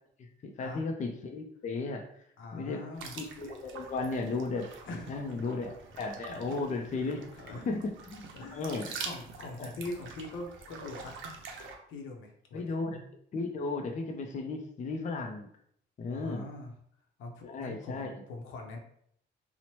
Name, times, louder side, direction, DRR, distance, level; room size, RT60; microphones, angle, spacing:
voice 1, 0.2-2.0 2.5-2.8 3.2-4.7 5.1-5.7 6.0-7.3 7.7-8.3 8.5-8.9 9.6-9.7 12.5-13.0 13.3-15.5 16.0-16.5 17.4-18.2, left 3 dB, 40° left, 3 dB, 0.4 m, -35 dB
voice 2, 2.4-3.2 4.9-5.5 6.2-6.5 7.0-7.7 8.3-11.2 11.9-12.8 16.1-16.7 17.2-18.8, left 2 dB, 80° left, 2 dB, 0.6 m, -43 dB
sound 1, 3.0-11.7, right 4 dB, 75° right, 0.5 m, -45 dB
2.8 x 2.1 x 3.0 m, 0.66 s
cardioid pair, 90°, 20 cm